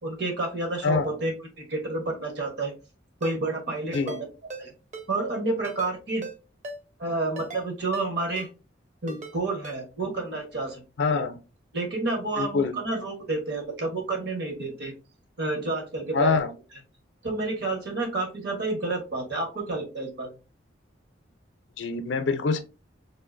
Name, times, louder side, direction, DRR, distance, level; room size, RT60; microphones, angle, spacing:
voice 1, 0.0-2.7 3.2-4.2 4.6-4.7 5.1-6.2 7.0-8.5 9.0-10.8 11.1-11.2 11.7-14.9 15.4-16.4 17.2-20.3, right 2 dB, 60° right, 3 dB, 1.0 m, -30 dB
voice 2, 0.8-1.1 3.9-4.2 11.0-11.3 12.4-12.7 16.1-16.5 21.8-22.6, left 4 dB, 70° left, 9 dB, 0.5 m, -25 dB
Ringtone, 3.2-3.3 3.9-4.2 4.5-4.6 4.9-5.1 5.6-5.9 6.2-6.3 6.6-6.8 7.4-7.6 7.9-8.1 8.4-8.5 9.1-9.3 9.6-9.8, right 2 dB, 40° right, 0.6 m, -38 dB
3.6 x 2.5 x 2.5 m, 0.31 s
head